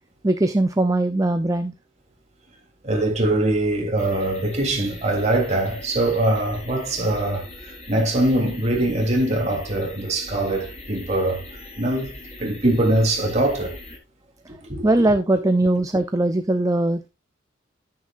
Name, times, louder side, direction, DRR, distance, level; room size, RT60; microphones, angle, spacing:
voice 1, 0.2-1.7 14.8-17.1, right 2 dB, 15° right, 0.6 m, -20 dB
voice 2, 2.8-11.4 11.8-12.1 12.4-13.7 14.6-14.8, right 1 dB, 35° right, 3.3 m, -22 dB
sound 1, 4.0-14.0, left 2 dB, 35° left, 3.6 m, -41 dB
10.5 x 9.6 x 2.6 m
head